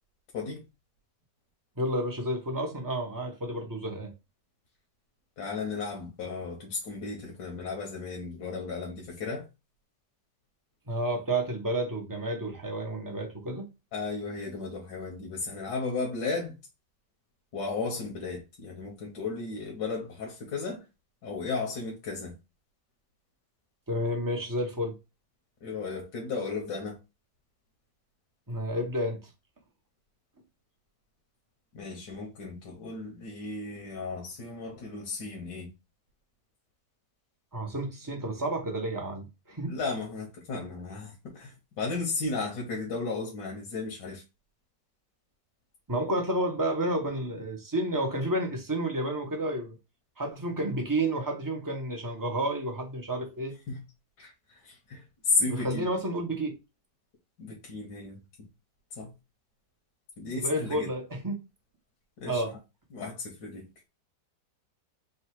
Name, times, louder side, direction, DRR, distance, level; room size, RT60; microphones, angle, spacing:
voice 1, 1.8-4.1 10.9-13.7 23.9-24.9 28.5-29.2 37.5-39.8 45.9-49.8 50.2-53.5 55.5-56.6 60.3-61.4 62.3-62.5, right 1 dB, 20° right, 0.5 m, -30 dB
voice 2, 5.4-9.5 13.9-16.5 17.5-20.8 21.2-22.3 25.6-27.0 31.7-35.7 39.7-44.2 53.7-53.8 54.2-55.9 57.4-58.5 58.9-59.1 60.2-60.9 62.2-62.6 62.9-63.7, left 4 dB, 75° left, 1.7 m, -34 dB
3.8 x 2.3 x 4.5 m
omnidirectional pair, 1.9 m